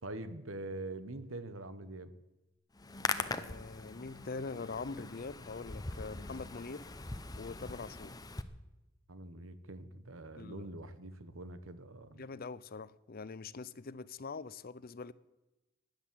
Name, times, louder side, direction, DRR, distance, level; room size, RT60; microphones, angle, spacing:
voice 1, 0.0-2.1 9.1-12.2, right 2 dB, 85° right, 1.3 m, -44 dB
Hands, 2.7-8.4, left 3 dB, 20° left, 0.8 m, -41 dB
voice 2, 3.2-6.9 7.4-8.2 10.4-10.7 12.1-15.1, left 4 dB, 50° left, 0.6 m, -43 dB
15.5 x 10.5 x 7.6 m
head